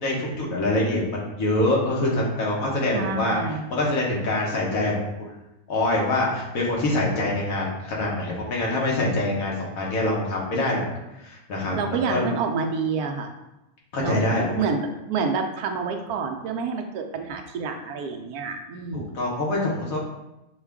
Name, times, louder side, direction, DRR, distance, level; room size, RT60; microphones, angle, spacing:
voice 1, 0.0-3.4 3.7-5.1 5.7-10.8 11.2-12.2 13.9-14.7 18.9-20.0, left 1 dB, 70° left, -3 dB, 1.5 m, -25 dB
voice 2, 2.9-3.7 11.7-13.3 14.0-19.2, right 5 dB, 90° right, 4 dB, 1.1 m, -28 dB
6.4 x 2.3 x 3.5 m, 0.93 s
omnidirectional pair, 1.5 m